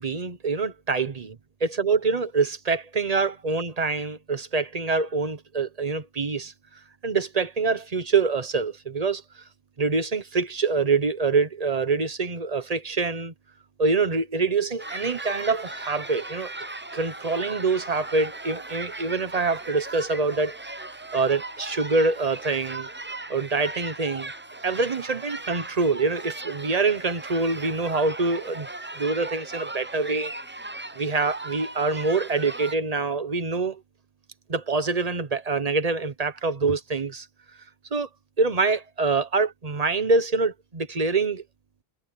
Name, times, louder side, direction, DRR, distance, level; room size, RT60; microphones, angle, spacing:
voice 1, 0.0-1.3 1.6-6.5 7.0-9.2 9.8-13.3 13.8-16.5 16.9-20.5 21.1-22.9 23.3-24.3 24.6-28.7 29.0-30.3 31.0-33.8 34.5-37.3 37.9-38.1 38.4-41.4, right 4 dB, 40° right, 1.2 m, -25 dB
sound 1, 14.8-32.7, right 2 dB, 15° right, 0.5 m, -38 dB
omnidirectional pair, 1.0 m